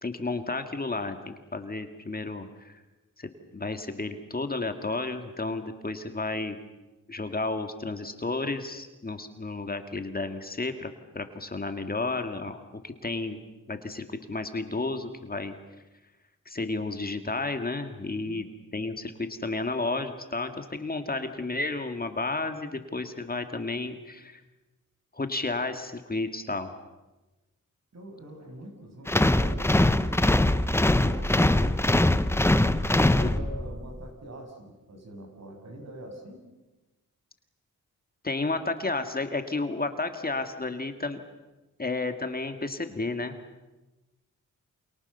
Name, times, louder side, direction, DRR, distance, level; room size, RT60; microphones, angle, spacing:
voice 1, 0.0-2.8 3.2-6.6 7.1-13.4 13.7-15.6 16.5-18.4 18.7-24.4 25.1-26.7 33.2-33.3 38.2-41.2 41.8-43.4, left 3 dB, 30° left, 7 dB, 2.1 m, -32 dB
voice 2, 27.9-30.6 30.9-31.8 32.3-32.5 32.8-36.4, right 1 dB, 55° right, 3 dB, 7.2 m, -44 dB
sound 1, 29.1-33.8, left 1 dB, 10° left, 0.9 m, -22 dB
29.0 x 27.5 x 6.9 m, 1.1 s
wide cardioid pair, 100°, 32 cm